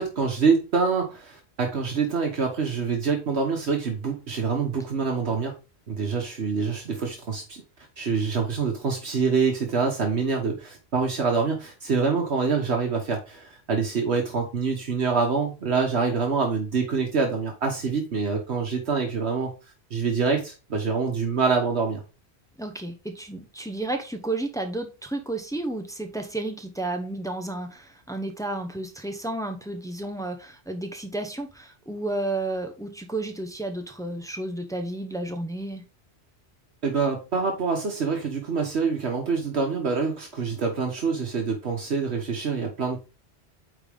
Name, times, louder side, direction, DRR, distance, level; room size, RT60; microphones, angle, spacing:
voice 1, 0.0-5.5 5.9-7.6 8.0-19.5 19.9-22.0 36.8-43.0, right 5 dB, 75° right, 2 dB, 1.4 m, -26 dB
voice 2, 22.6-35.8, right 2 dB, 5° left, 5 dB, 1.0 m, -32 dB
8.8 x 4.1 x 3.5 m, 0.31 s
omnidirectional pair, 1.1 m